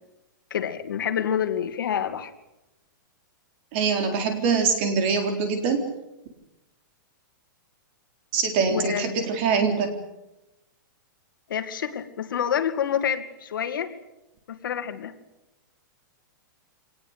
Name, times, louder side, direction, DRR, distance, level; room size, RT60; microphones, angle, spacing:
voice 1, 0.5-2.3 8.7-9.0 11.5-13.9 14.5-15.1, left 9 dB, 75° left, 8 dB, 2.6 m, -27 dB
voice 2, 3.7-5.9 8.3-9.9, right 5 dB, 30° right, 6 dB, 4.0 m, -23 dB
25.5 x 19.5 x 8.2 m, 0.92 s
supercardioid pair, 180°, 11 cm